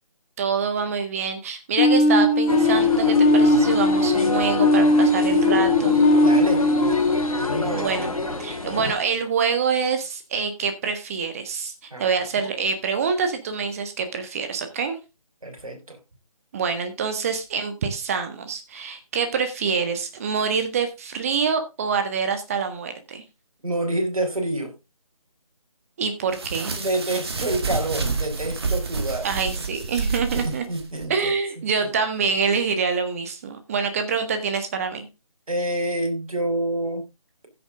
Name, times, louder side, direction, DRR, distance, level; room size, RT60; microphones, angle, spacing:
voice 1, 0.4-6.0 7.7-8.1 8.4-15.0 16.5-23.2 26.0-26.7 29.2-30.6 31.1-35.1, right 5 dB, 25° right, 1.6 m, -26 dB
sound 1, 1.8-8.5, left 2 dB, 20° left, 0.9 m, -19 dB
sound 2, 2.5-8.9, left 2 dB, 75° left, 3.3 m, -30 dB
voice 2, 6.2-6.6 7.4-7.9 11.9-12.1 15.4-16.0 23.6-24.7 26.8-29.3 30.3-31.3 35.5-37.1, right 1 dB, 70° right, 4.2 m, -27 dB
sound 3, 26.3-31.1, right 4 dB, 45° right, 2.0 m, -28 dB
15.5 x 6.8 x 3.7 m
figure-of-eight pair, 150°, 18 cm